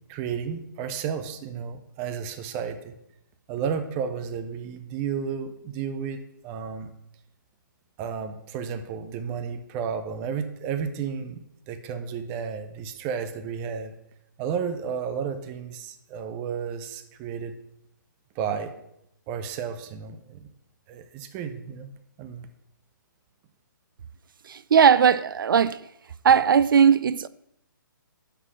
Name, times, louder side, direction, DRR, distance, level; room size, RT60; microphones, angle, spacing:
voice 1, 0.1-3.0 3.5-6.9 8.0-11.4 11.7-13.9 14.4-17.5 18.4-18.7 19.3-20.5 20.9-21.9 22.2-22.5, right 7 dB, 15° right, 0.5 m, -32 dB
voice 2, 24.4-25.8 26.2-27.3, right 7 dB, 75° right, 0.4 m, -18 dB
6.1 x 5.6 x 6.2 m
hypercardioid pair, 160°, 11 cm